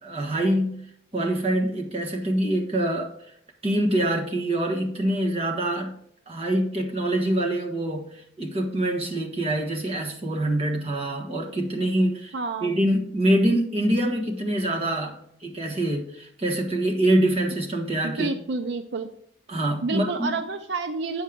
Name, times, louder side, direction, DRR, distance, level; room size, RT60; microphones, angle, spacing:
voice 1, 0.0-0.8 1.1-3.3 3.6-5.9 6.3-18.3 19.5-20.3, right 1 dB, 35° right, 1.4 m, -25 dB
voice 2, 12.3-12.7 18.0-19.1 19.8-21.2, right 3 dB, 75° right, 0.6 m, -29 dB
8.4 x 6.4 x 3.6 m
head